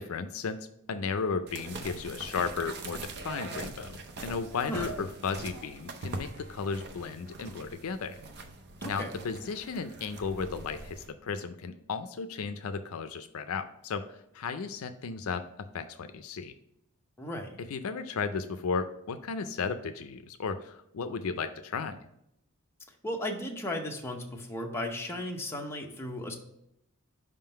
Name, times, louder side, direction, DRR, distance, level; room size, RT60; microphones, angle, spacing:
voice 1, 0.0-8.2 8.8-15.5 15.7-16.5 17.6-22.0, left 5 dB, 65° left, 9 dB, 0.4 m, -34 dB
sound 1, 1.5-11.1, right 2 dB, 50° right, 0.6 m, -42 dB
voice 2, 8.8-9.2 17.2-17.6 23.0-26.4, left 1 dB, 10° left, 1 dB, 0.7 m, -35 dB
5.3 x 3.7 x 5.6 m, 0.79 s
head